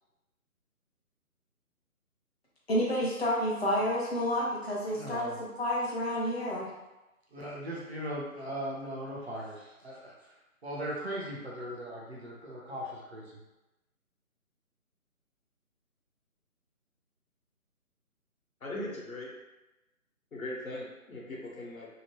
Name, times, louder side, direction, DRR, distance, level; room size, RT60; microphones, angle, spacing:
voice 1, 2.7-6.7, equal, 45° left, -5 dB, 0.8 m, -30 dB
voice 2, 4.9-5.4 7.3-10.3 10.6-13.4, equal, 45° right, -4 dB, 0.7 m, -39 dB
voice 3, 18.6-19.3 20.3-21.9, left 1 dB, 70° left, -3 dB, 1.0 m, -39 dB
2.8 x 2.1 x 3.0 m, 1.0 s
figure-of-eight pair, 150°, 44 cm